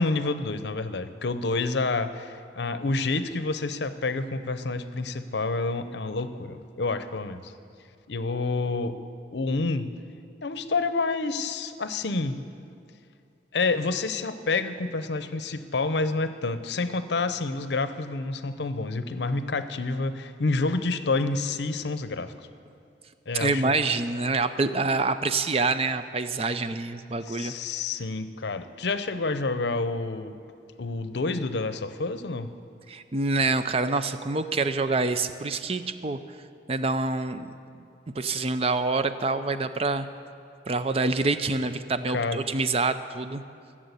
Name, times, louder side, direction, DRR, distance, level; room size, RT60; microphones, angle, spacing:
voice 1, 0.0-7.5 8.1-9.0 9.3-9.9 10.4-12.4 13.5-22.3 23.3-23.8 27.3-30.4 30.8-32.5 42.1-42.4, left 3 dB, 70° left, 11 dB, 0.7 m, -28 dB
voice 2, 23.3-27.5 32.9-36.2 36.7-37.5 38.2-40.1 40.7-43.4, right 3 dB, 35° right, 11 dB, 0.5 m, -26 dB
15.5 x 7.5 x 8.1 m, 2.4 s
head